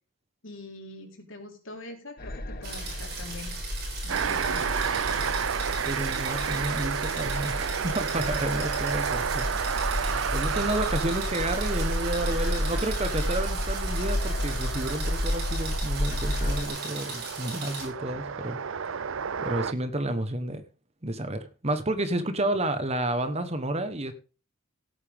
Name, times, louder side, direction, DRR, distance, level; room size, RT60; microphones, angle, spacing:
voice 1, 0.4-3.5 4.0-4.7 22.3-22.5, left 2 dB, 65° left, 2 dB, 4.2 m, -43 dB
sound 1, 2.2-16.7, left 1 dB, 45° left, 1.5 m, -32 dB
sound 2, 2.6-17.9, right 3 dB, 50° right, 6.6 m, -38 dB
sound 3, 4.1-19.7, right 7 dB, 70° right, 0.5 m, -32 dB
voice 2, 5.9-9.8 10.3-20.6 21.0-24.1, right 1 dB, 30° right, 10 dB, 1.3 m, -31 dB
17.0 x 8.8 x 3.6 m, 0.36 s
head